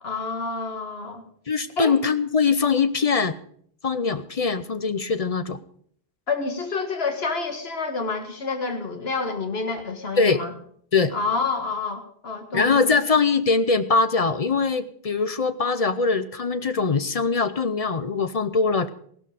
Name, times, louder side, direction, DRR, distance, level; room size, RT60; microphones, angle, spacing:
voice 1, 0.0-1.2 1.8-2.0 6.3-10.5 11.1-12.8, left 4 dB, 70° left, 6 dB, 2.0 m, -28 dB
voice 2, 1.5-3.3 3.8-5.6 10.2-10.4 10.9-11.1 12.5-18.9, left 4 dB, 40° left, 13 dB, 0.7 m, -22 dB
16.0 x 12.5 x 5.0 m, 0.63 s
omnidirectional pair, 1.1 m